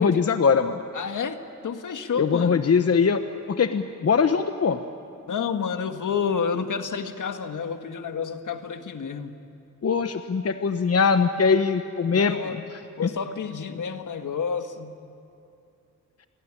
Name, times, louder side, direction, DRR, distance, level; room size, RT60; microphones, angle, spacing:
voice 1, 0.0-0.8 2.2-3.2 3.5-4.8 9.8-12.6 13.0-13.1, left 5 dB, 50° left, 9 dB, 1.0 m, -21 dB
voice 2, 0.9-2.6 5.3-9.4 12.0-12.6 13.0-15.0, left 6 dB, 75° left, 7 dB, 1.7 m, -30 dB
27.5 x 21.5 x 9.9 m, 2.7 s
wide cardioid pair, 90°, 31 cm